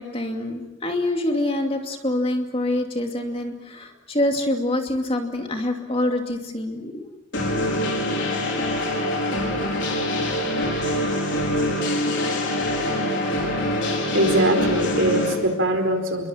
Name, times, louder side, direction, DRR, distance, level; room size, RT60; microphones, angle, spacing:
voice 1, 0.0-7.0 8.5-8.6 12.3-12.5, left 1 dB, 25° left, 3 dB, 2.6 m, -26 dB
sound 1, 7.3-15.3, left 1 dB, 55° left, 4.9 m, -24 dB
voice 2, 14.1-16.3, right 1 dB, 60° right, 5 dB, 4.6 m, -22 dB
29.0 x 23.0 x 7.4 m, 1.0 s
head